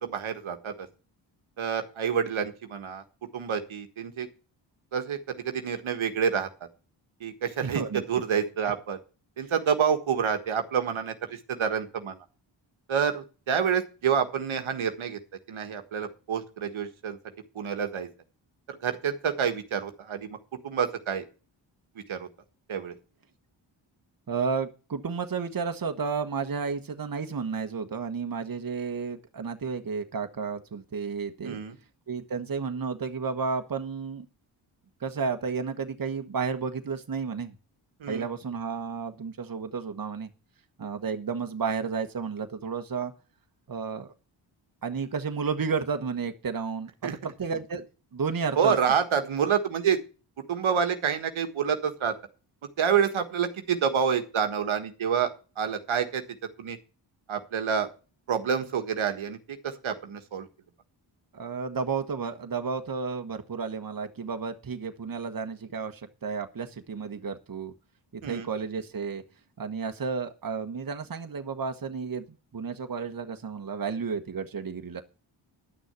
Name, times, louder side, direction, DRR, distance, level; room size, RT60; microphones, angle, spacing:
voice 1, 0.0-0.9 1.6-3.0 3.3-4.3 4.9-6.5 7.2-7.8 8.1-9.0 9.4-12.2 12.9-15.2 15.5-17.2 17.5-18.1 18.8-20.4 20.6-21.2 22.1-22.3 22.7-22.9 31.4-31.8 38.0-38.2 47.0-47.1 48.6-50.0 50.5-52.1 52.8-55.3 55.6-56.2 56.6-56.8 57.3-57.9 58.3-60.5 68.2-68.5, right 7 dB, 70° right, 7 dB, 1.5 m, -28 dB
voice 2, 7.6-8.0 24.3-31.6 32.1-34.3 35.0-37.6 38.1-40.3 40.8-43.1 43.7-44.1 44.8-47.8 48.1-48.8 61.3-67.7 68.1-69.2 69.6-72.2 72.5-75.0, right 5 dB, 40° right, 7 dB, 1.4 m, -32 dB
11.0 x 6.3 x 8.2 m, 0.34 s
cardioid pair, 50°, 50 cm